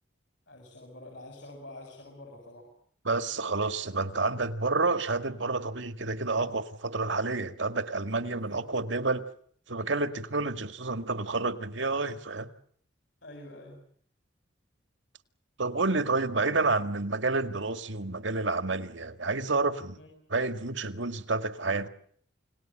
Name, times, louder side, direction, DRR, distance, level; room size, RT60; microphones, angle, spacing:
voice 1, 0.5-2.7 8.3-8.6 13.2-13.8 20.0-20.1, left 1 dB, 65° left, 2 dB, 7.5 m, -47 dB
voice 2, 3.0-9.2 9.7-12.5 15.6-20.0 20.3-21.9, right 3 dB, 70° right, 9 dB, 2.0 m, -29 dB
29.5 x 19.0 x 8.9 m, 0.63 s
head